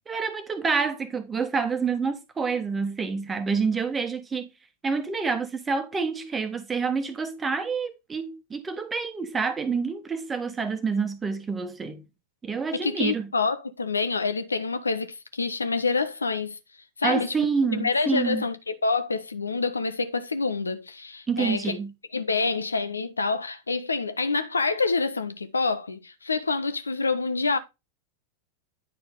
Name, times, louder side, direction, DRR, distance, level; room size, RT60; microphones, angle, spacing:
voice 1, 0.1-4.5 4.8-12.0 12.4-13.3 17.0-18.4 21.3-21.9, right 5 dB, 15° right, 1.2 m, -28 dB
voice 2, 12.7-16.6 17.0-17.3 17.7-21.8 22.1-27.6, left 4 dB, 75° left, 0.6 m, -27 dB
9.7 x 4.5 x 3.7 m
figure-of-eight pair, 90°, 0 cm